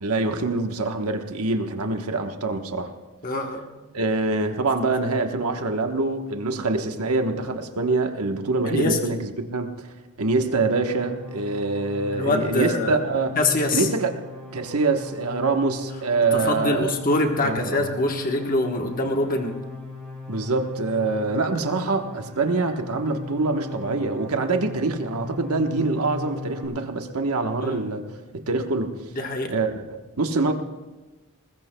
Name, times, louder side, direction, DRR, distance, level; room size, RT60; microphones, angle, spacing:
voice 1, 0.0-2.9 3.9-9.9 10.2-13.3 13.7-14.2 14.5-16.9 17.4-17.9 20.3-28.0 28.3-28.9 29.5-29.8 30.2-30.5, right 3 dB, 85° right, 5 dB, 1.2 m, -25 dB
voice 2, 3.2-3.7 8.7-9.0 12.1-13.0 13.4-13.9 16.3-19.6 27.6-27.8 29.1-29.5, left 2 dB, 40° left, 3 dB, 1.2 m, -24 dB
sound 1, 10.4-26.7, left 3 dB, 5° left, 4.0 m, -38 dB
20.5 x 20.5 x 2.3 m, 1.2 s
head